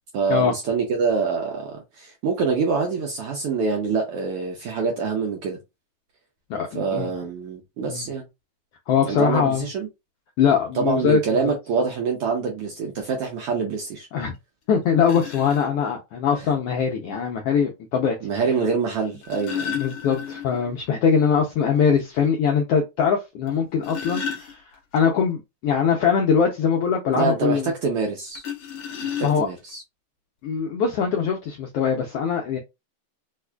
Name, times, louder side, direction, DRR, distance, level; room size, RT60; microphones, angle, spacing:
voice 1, 0.1-5.6 6.7-8.2 9.1-9.9 10.7-14.1 18.2-19.8 27.1-28.4 29.0-29.8, right 5 dB, 75° right, 1.4 m, -25 dB
voice 2, 6.5-7.1 7.9-8.1 8.9-9.7 10.4-11.5 14.1-14.3 14.7-18.2 19.1-19.2 19.7-24.6 24.9-27.7 29.2-29.5 30.4-32.6, left 6 dB, 90° left, 1.3 m, -22 dB
sound 1, 14.3-14.4 15.0-15.7 17.1-17.2 19.0-20.7 21.0-21.1 21.5-21.6 22.2-22.3 23.5-25.0 28.4-29.7 30.6-30.7 31.0-31.3, left 8 dB, 65° left, 1.5 m, -32 dB
4.6 x 2.4 x 2.2 m
omnidirectional pair, 3.3 m